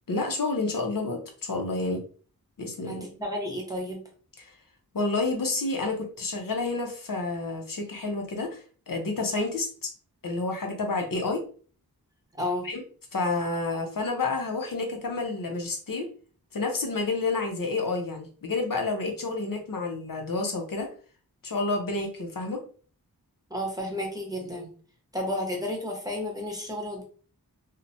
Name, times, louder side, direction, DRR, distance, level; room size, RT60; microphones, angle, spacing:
voice 1, 0.1-2.0 2.6-3.1 4.4-4.5 4.9-8.6 8.9-9.9 10.2-11.4 12.6-12.8 13.1-16.1 16.5-20.9 21.4-22.6, left 3 dB, 60° left, 3 dB, 0.6 m, -29 dB
voice 2, 2.9-4.0 12.4-12.7 23.5-24.7 25.1-27.0, left 1 dB, 10° right, -1 dB, 0.8 m, -32 dB
2.8 x 2.1 x 2.6 m, 0.41 s
wide cardioid pair, 60°, 37 cm